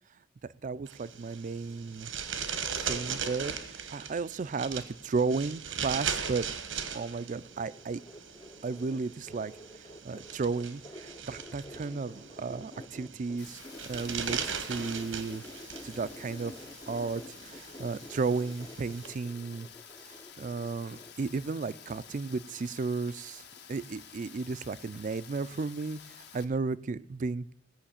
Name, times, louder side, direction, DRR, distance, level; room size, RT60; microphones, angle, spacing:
voice 1, 0.6-2.1 2.8-6.4 6.9-8.0 8.6-15.4 15.8-16.5 16.9-19.7 20.0-23.4 23.7-27.5, right 4 dB, 40° right, 17 dB, 0.4 m, -34 dB
sound 1, 0.9-19.1, right 7 dB, 90° right, 1.3 m, -39 dB
sound 2, 6.7-13.4 13.6-22.7 22.9-23.4 23.7-23.8, left 1 dB, 20° left, 0.5 m, -50 dB
Rain, 13.4-26.4, left 7 dB, 60° left, 1.3 m, -51 dB
17.0 x 5.8 x 8.6 m, 0.79 s
head